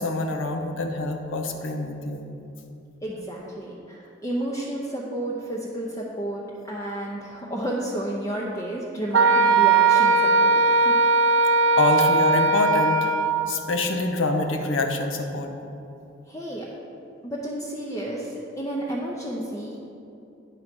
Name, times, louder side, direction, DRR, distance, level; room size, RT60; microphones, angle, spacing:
voice 1, 0.0-2.3 11.8-13.1 13.5-15.5, left 2 dB, 75° left, 4 dB, 0.7 m, -25 dB
voice 2, 3.0-11.0 11.7-11.8 16.3-16.7 17.2-18.3 18.6-19.8, right 1 dB, 20° left, -5 dB, 0.7 m, -31 dB
Wind instrument woodwind instrument, 9.1-13.5, right 3 dB, 80° right, 0.5 m, -19 dB
9.1 x 3.9 x 6.0 m, 2.7 s
head